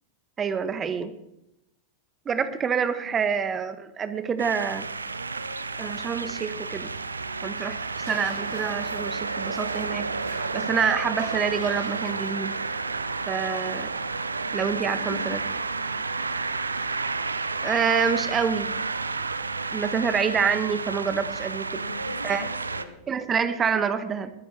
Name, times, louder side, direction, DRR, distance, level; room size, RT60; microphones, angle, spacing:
voice 1, 0.4-1.1 2.2-4.9 5.8-6.9 7.4-10.1 10.5-12.5 13.3-13.9 14.5-15.4 17.6-18.7 19.7-21.7 22.2-22.4 23.1-24.3, right 6 dB, 20° right, 12 dB, 1.3 m, -27 dB
sound 1, 4.4-22.8, right 4 dB, 80° right, 0.7 m, -31 dB
Tearing, 4.5-16.8, right 3 dB, 60° right, 5.8 m, -48 dB
voice 2, 14.4-15.4 21.7-23.0, left 2 dB, 80° left, 4 dB, 2.4 m, -40 dB
22.0 x 14.5 x 3.4 m, 0.85 s
figure-of-eight pair, 90°, 0 cm